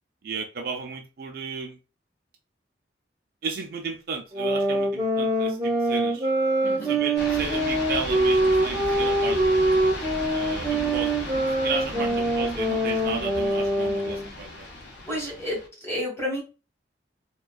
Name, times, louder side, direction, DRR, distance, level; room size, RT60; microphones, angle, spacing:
voice 1, 0.2-1.8 3.4-6.3 6.9-9.4 10.3-14.7, right 5 dB, 55° right, 3 dB, 0.4 m, -34 dB
sound 1, 4.3-14.3, right 1 dB, 20° right, 0.8 m, -24 dB
voice 2, 6.6-7.0 11.9-12.3 14.6-14.8 15.0-16.4, left 1 dB, 15° left, -4 dB, 1.3 m, -32 dB
sound 2, 7.2-15.7, left 2 dB, 75° left, 0.6 m, -36 dB
2.4 x 2.2 x 2.3 m, 0.31 s
head